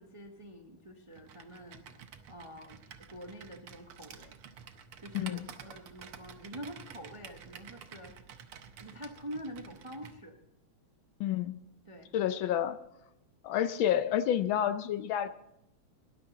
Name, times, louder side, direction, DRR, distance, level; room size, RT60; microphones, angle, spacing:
voice 1, 0.0-1.8 2.3-4.4 5.0-8.1 8.8-10.3 11.8-12.1, equal, 30° right, 4 dB, 0.6 m, -46 dB
Computer keyboard, 1.1-10.2, right 7 dB, 85° right, 1.9 m, -51 dB
voice 2, 5.1-5.5 11.2-11.5 12.1-12.8 13.4-15.3, left 10 dB, 75° left, 12 dB, 1.4 m, -29 dB
18.5 x 11.5 x 3.9 m, 0.82 s
omnidirectional pair, 2.3 m